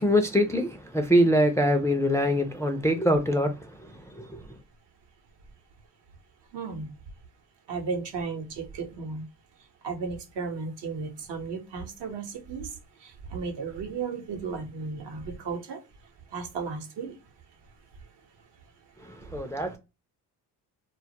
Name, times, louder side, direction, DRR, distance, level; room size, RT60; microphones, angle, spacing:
voice 1, 0.0-4.6 19.0-19.8, equal, 5° left, 0.4 m, -24 dB
voice 2, 6.5-6.9 7.7-9.2 9.8-12.7 13.0-15.8 16.3-17.1, right 4 dB, 65° right, 0.9 m, -34 dB
2.2 x 2.0 x 2.8 m
supercardioid pair, 60°, 44 cm